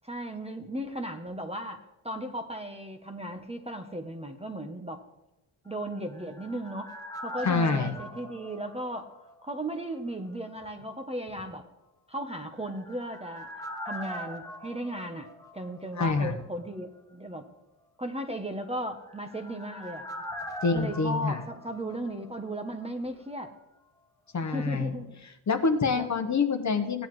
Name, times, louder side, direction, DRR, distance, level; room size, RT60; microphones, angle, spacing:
voice 1, 0.0-5.0 5.6-6.9 7.2-9.1 9.4-11.6 12.1-13.5 13.8-15.3 15.5-17.4 18.0-20.1 20.7-23.5 24.4-25.1 25.9-26.1, right 1 dB, 15° right, 5 dB, 0.7 m, -36 dB
sound 1, 5.8-9.7 9.9-10.0 12.4-16.1 16.4-16.5 18.8-22.6 22.9-23.0, equal, 5° left, 1.1 m, -42 dB
voice 2, 7.4-7.9 16.0-16.4 20.6-21.4 24.3-24.9 25.5-27.1, left 4 dB, 35° left, 7 dB, 0.9 m, -26 dB
16.5 x 9.6 x 3.1 m, 0.94 s
wide cardioid pair, 145°, 49 cm